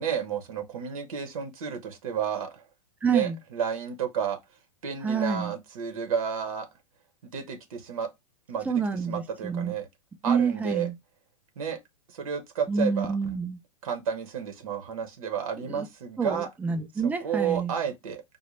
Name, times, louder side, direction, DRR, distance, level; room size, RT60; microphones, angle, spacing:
voice 1, 0.0-2.6 3.1-4.4 4.8-6.7 7.3-8.1 8.5-8.7 9.1-9.9 10.2-10.9 11.6-11.8 12.1-13.1 13.8-16.5 17.0-18.2, right 7 dB, 75° right, 0.9 m, -31 dB
voice 2, 3.0-3.4 5.0-5.5 8.7-9.7 10.2-10.9 12.7-13.6 15.6-15.9 16.2-17.7, right 5 dB, 10° right, 0.4 m, -27 dB
4.0 x 2.1 x 3.0 m
hypercardioid pair, 130°, 18 cm